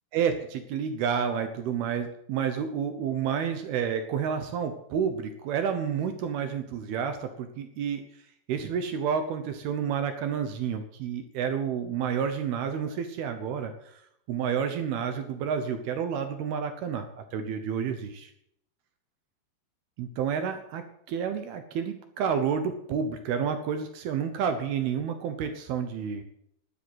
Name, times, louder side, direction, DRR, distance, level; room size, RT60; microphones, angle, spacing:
voice 1, 0.1-8.0 8.5-13.7 14.3-18.3 20.0-26.2, right 7 dB, 75° right, 8 dB, 2.3 m, -30 dB
12.0 x 9.5 x 8.0 m, 0.73 s
omnidirectional pair, 5.7 m